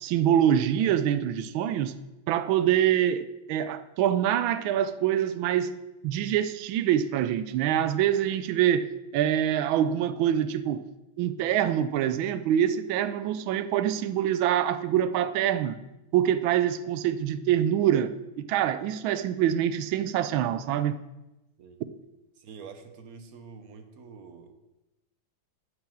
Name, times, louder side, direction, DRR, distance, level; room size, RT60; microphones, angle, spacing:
voice 1, 0.0-1.9 2.3-5.8 6.0-8.9 9.1-10.8 11.2-15.8 16.1-21.0, right 10 dB, 85° right, 1.4 m, -25 dB
voice 2, 22.4-24.5, right 5 dB, 55° right, 1.2 m, -46 dB
9.5 x 4.9 x 7.5 m
omnidirectional pair, 2.1 m